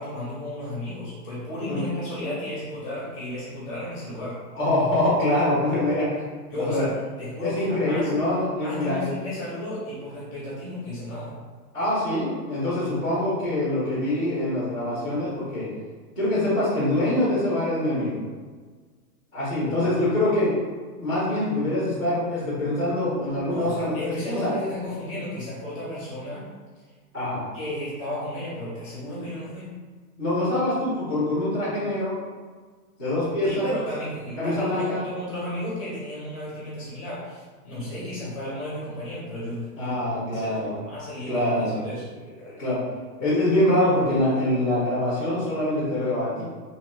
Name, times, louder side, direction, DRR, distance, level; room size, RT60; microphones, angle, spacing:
voice 1, 0.0-4.4 6.5-8.1 8.5-11.4 23.5-26.5 27.5-29.7 33.4-40.0 40.3-42.1, left 1 dB, 20° left, -8 dB, 0.7 m, -33 dB
voice 2, 4.5-6.2 6.7-6.8 7.4-9.1 11.7-15.6 16.2-18.2 19.3-20.5 21.0-24.5 27.1-27.4 30.2-32.1 33.0-33.7 34.4-35.0 39.8-40.7 41.3-41.8 42.4-42.8 43.2-46.4, left 1 dB, 10° right, -19 dB, 0.5 m, -24 dB
2.9 x 2.7 x 3.1 m, 1.5 s
hypercardioid pair, 170°, 48 cm